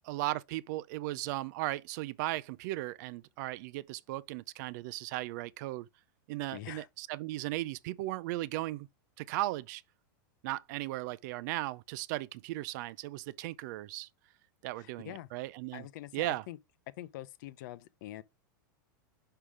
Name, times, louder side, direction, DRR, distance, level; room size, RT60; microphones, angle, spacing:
voice 1, 0.0-5.9 6.3-8.9 9.2-9.8 10.4-14.1 14.6-15.9 16.1-16.4, right 17 dB, 60° right, 0.5 m, -36 dB
voice 2, 6.5-6.9 14.8-15.3 15.7-16.6 17.0-18.2, left 14 dB, 65° left, 0.7 m, -45 dB
5.7 x 5.0 x 4.8 m
hypercardioid pair, 125°, 11 cm